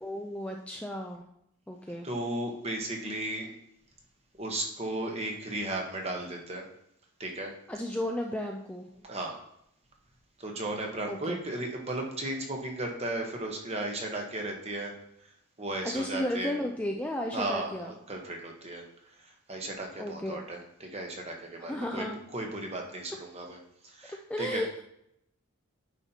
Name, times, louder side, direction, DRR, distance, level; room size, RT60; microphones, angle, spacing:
voice 1, 0.0-1.2 1.7-2.1 7.7-8.9 11.1-11.4 15.8-17.9 20.0-20.4 21.6-22.2 24.3-24.8, left 1 dB, 5° left, 1 dB, 0.3 m, -34 dB
voice 2, 2.0-3.5 4.4-6.7 7.2-7.5 9.1-9.4 10.4-14.9 15.6-16.5 17.3-18.8 19.2-22.1 22.3-23.6 23.8-24.6, right 1 dB, 30° right, 1 dB, 1.0 m, -35 dB
9.2 x 5.7 x 2.8 m, 0.76 s
head